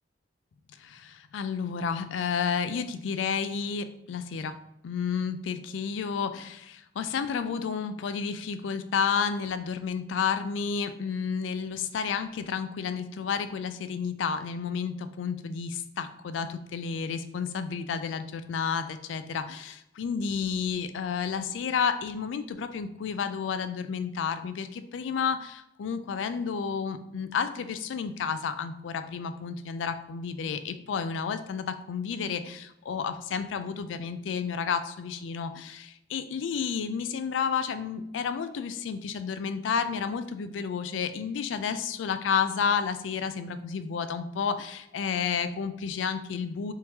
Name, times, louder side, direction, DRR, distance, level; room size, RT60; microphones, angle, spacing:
voice 1, 0.8-4.6 4.8-46.7, left 6 dB, 90° left, 10 dB, 0.3 m, -31 dB
3.5 x 2.9 x 2.8 m, 0.82 s
head